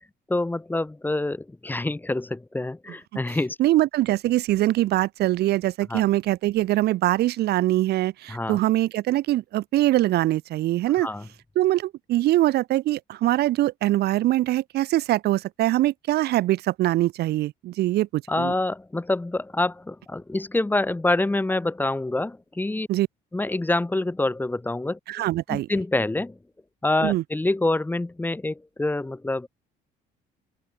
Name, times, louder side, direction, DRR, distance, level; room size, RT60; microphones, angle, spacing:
voice 1, 0.3-3.6 5.9-6.0 8.3-8.6 11.0-11.3 18.3-22.9 23.3-26.4 26.8-29.5, left 2 dB, 10° left, 2.6 m, -26 dB
voice 2, 3.6-11.1 11.5-18.5 22.9-23.1 25.1-25.7 27.0-27.2, right 15 dB, 70° right, 1.4 m, -23 dB
open air
cardioid pair, 110°, 17 cm